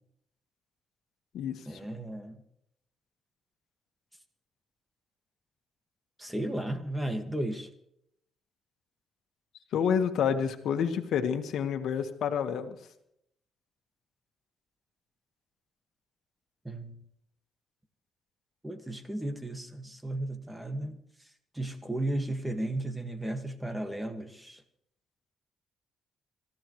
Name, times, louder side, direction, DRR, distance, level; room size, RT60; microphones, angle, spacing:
voice 1, 1.7-2.4 6.2-7.7 16.7-17.0 18.6-21.0 21.6-24.6, right 1 dB, 10° right, 1.9 m, -34 dB
voice 2, 9.7-12.8, left 7 dB, 75° left, 1.6 m, -28 dB
26.0 x 14.5 x 3.2 m
cardioid pair, 90°, 0 cm